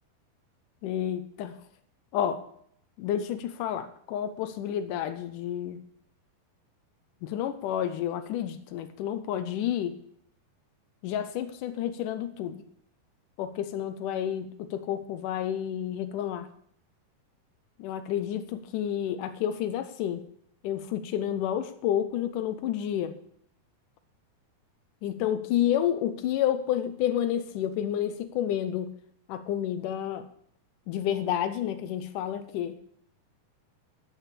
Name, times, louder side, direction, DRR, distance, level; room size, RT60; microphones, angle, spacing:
voice 1, 0.8-1.5 2.1-2.4 3.0-5.8 7.2-9.9 11.0-12.6 13.4-16.5 17.8-20.2 20.6-23.2 25.0-28.9 29.3-30.3 30.9-32.8, left 10 dB, 90° left, 10 dB, 1.8 m, -30 dB
12.5 x 6.7 x 8.3 m, 0.67 s
omnidirectional pair, 4.7 m